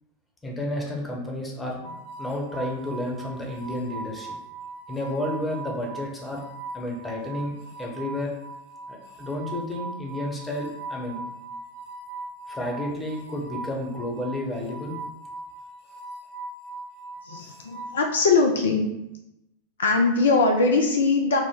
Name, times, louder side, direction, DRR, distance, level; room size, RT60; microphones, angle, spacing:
voice 1, 0.4-4.3 4.9-6.4 6.7-8.3 8.9-11.2 12.5-14.9, left 1 dB, 10° left, -1 dB, 0.9 m, -31 dB
sound 1, 1.8-18.1, right 3 dB, 45° left, 0.8 m, -40 dB
voice 2, 17.2-18.9 19.8-21.4, left 3 dB, 65° left, 3 dB, 0.4 m, -21 dB
5.0 x 2.1 x 3.6 m, 0.87 s
figure-of-eight pair, 90°, 0 cm